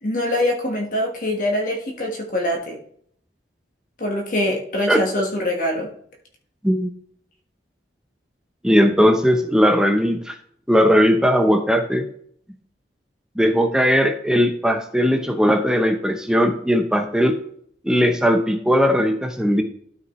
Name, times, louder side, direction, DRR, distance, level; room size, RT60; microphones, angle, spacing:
voice 1, 0.0-2.8 4.0-5.9, left 1 dB, 50° left, 1 dB, 1.5 m, -24 dB
voice 2, 8.6-10.4 10.7-12.1 13.4-17.4 17.8-19.6, equal, 5° right, 6 dB, 0.7 m, -18 dB
12.5 x 5.6 x 3.1 m, 0.63 s
head